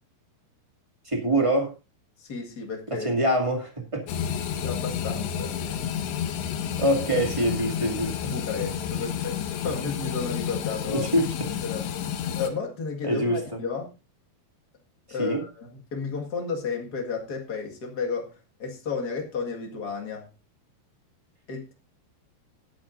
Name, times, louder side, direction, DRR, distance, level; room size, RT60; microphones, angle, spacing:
voice 1, 1.0-1.7 2.9-4.0 6.8-8.1 10.9-11.3 13.0-13.4 15.2-15.4, right 1 dB, 30° right, 2 dB, 0.6 m, -24 dB
voice 2, 2.2-3.1 4.6-5.8 8.3-11.1 11.6-11.9 12.4-13.9 15.1-20.3 21.5-21.7, left 5 dB, 65° left, 2 dB, 0.9 m, -32 dB
sound 1, 4.1-12.5, left 8 dB, 80° left, 3.6 m, -30 dB
18.5 x 11.0 x 2.6 m, 0.30 s
omnidirectional pair, 5.0 m